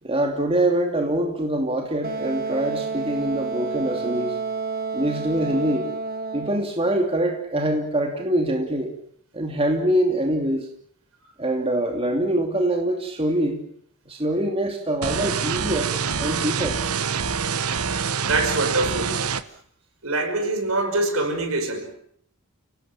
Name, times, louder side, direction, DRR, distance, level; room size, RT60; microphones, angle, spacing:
voice 1, 0.0-4.4 4.9-5.9 6.3-8.9 9.3-10.7 11.4-13.6 14.1-16.8, right 1 dB, 25° right, 2.7 m, -24 dB
Wind instrument woodwind instrument, 2.0-6.7, right 4 dB, 40° right, 1.0 m, -30 dB
sound 1, 15.0-19.4, right 6 dB, 85° right, 1.2 m, -26 dB
voice 2, 17.9-19.3 20.0-21.9, right 2 dB, 70° right, 5.7 m, -25 dB
30.0 x 18.5 x 7.4 m
head